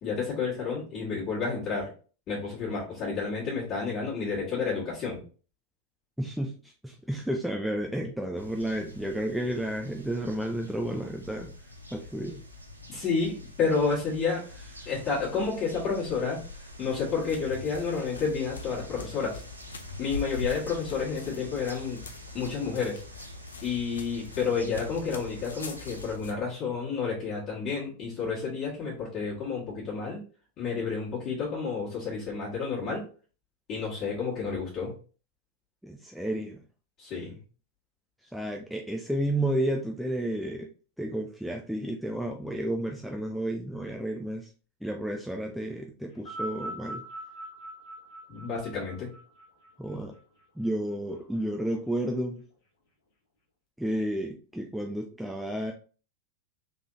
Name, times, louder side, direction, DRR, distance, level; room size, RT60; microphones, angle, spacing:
voice 1, 0.0-1.9 2.3-5.2 12.9-14.4 14.9-19.4 20.0-22.0 22.3-23.0 23.6-30.2 30.6-33.1 33.7-34.9 37.0-37.4 48.3-49.1, left 5 dB, 35° left, -9 dB, 1.8 m, -30 dB
voice 2, 6.2-11.5 11.9-12.4 35.8-36.6 38.3-40.7 41.0-44.5 44.8-47.0 49.8-50.1 50.6-52.4 53.8-55.7, right 1 dB, ahead, 2 dB, 0.4 m, -31 dB
sound 1, 8.4-26.2, left 1 dB, 80° right, 0.6 m, -45 dB
sound 2, 16.9-26.3, left 5 dB, 70° left, 0.5 m, -45 dB
sound 3, 46.1-50.7 51.6-51.7, right 1 dB, 50° left, 1.2 m, -41 dB
3.5 x 3.3 x 2.6 m, 0.38 s
figure-of-eight pair, 90°, 0 cm